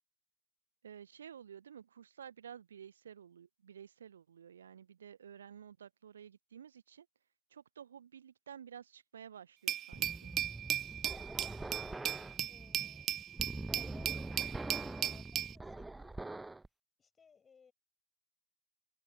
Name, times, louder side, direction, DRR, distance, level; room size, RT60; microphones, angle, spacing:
voice 1, 0.8-7.1 7.5-10.3, right 8 dB, 65° right, 0.8 m, -52 dB
Glass, 9.7-15.5, right 11 dB, 30° right, 0.5 m, -37 dB
sound 1, 9.9-16.7, right 2 dB, 5° right, 1.0 m, -44 dB
voice 2, 11.1-13.2 13.9-16.5 17.0-17.7, left 6 dB, 20° left, 6.0 m, -63 dB
open air
figure-of-eight pair, 90°, 0 cm